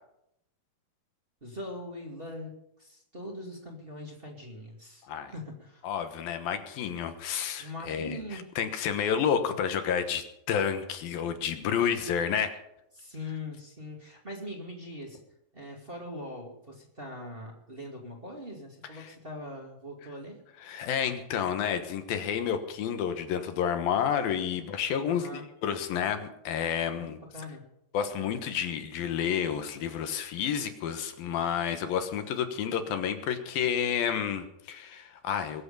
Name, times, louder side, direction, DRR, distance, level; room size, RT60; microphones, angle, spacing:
voice 1, 1.4-5.1 5.3-5.9 7.6-8.5 12.9-15.2 15.5-20.4 25.1-25.4 26.9-27.7, left 1 dB, 20° right, -1 dB, 1.9 m, -41 dB
voice 2, 5.8-8.2 8.6-12.6 19.0-19.1 20.6-27.2 27.9-35.6, left 8 dB, 70° left, 7 dB, 2.9 m, -30 dB
21.5 x 7.9 x 7.0 m, 0.80 s
omnidirectional pair, 4.6 m